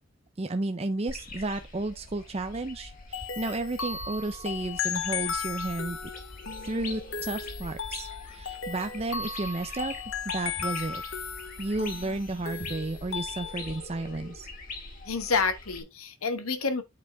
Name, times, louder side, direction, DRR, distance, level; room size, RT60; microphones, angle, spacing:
voice 1, 0.4-6.0 6.6-9.9 10.3-11.0 11.6-14.5, right 2 dB, 30° right, 0.6 m, -32 dB
sound 1, 1.1-15.8, left 2 dB, 40° left, 2.4 m, -43 dB
sound 2, 3.1-13.8, left 6 dB, 65° left, 1.1 m, -36 dB
voice 2, 15.1-16.8, left 4 dB, 85° left, 1.2 m, -28 dB
8.3 x 4.9 x 3.5 m
head